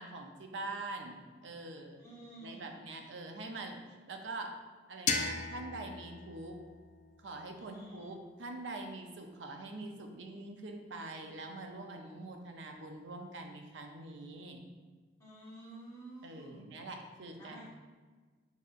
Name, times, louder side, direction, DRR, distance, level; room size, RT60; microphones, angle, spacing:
voice 1, 0.0-2.0 2.4-3.8 4.1-4.5 4.9-6.6 7.2-14.6 16.2-17.7, right 2 dB, 85° right, 4 dB, 0.6 m, -44 dB
voice 2, 2.0-2.8 7.6-8.1 15.2-16.6 17.4-17.7, right 1 dB, 15° left, -8 dB, 1.4 m, -50 dB
sound 1, 5.1-7.9, left 5 dB, 40° left, 0.3 m, -38 dB
4.8 x 4.1 x 2.5 m, 1.4 s
head